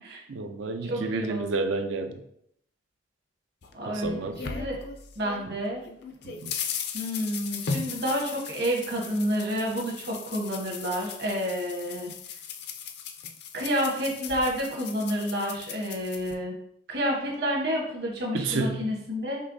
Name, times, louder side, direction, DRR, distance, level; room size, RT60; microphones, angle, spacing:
voice 1, 0.3-2.2 3.9-4.4 6.2-6.5 18.3-18.9, right 3 dB, 80° right, 6 dB, 0.5 m, -30 dB
voice 2, 0.8-1.5 3.7-4.2 4.4-4.8 5.2-5.8 6.9-12.1 13.5-16.6 16.9-19.4, equal, 55° right, -1 dB, 1.2 m, -29 dB
sound 1, 3.6-5.5 5.8-16.3, left 6 dB, 55° left, 0.4 m, -38 dB
5.4 x 3.2 x 2.6 m, 0.71 s
head